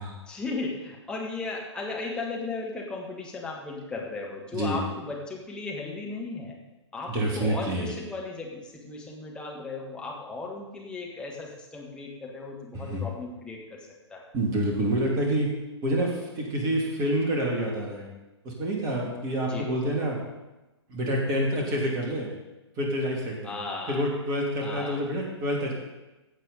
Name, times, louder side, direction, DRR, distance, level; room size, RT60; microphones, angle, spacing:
voice 1, 0.3-6.6 6.9-13.8 14.1-14.2 19.4-19.7 23.4-24.1 24.6-25.0, left 3 dB, 5° left, -2 dB, 1.7 m, -36 dB
voice 2, 7.1-7.9 12.7-13.0 14.3-15.5 15.8-18.1 18.4-20.2 20.9-22.3 22.8-23.5 23.9-25.7, right 1 dB, 25° right, -1 dB, 2.6 m, -27 dB
15.0 x 7.5 x 4.2 m, 1.1 s
figure-of-eight pair, 125°, 15 cm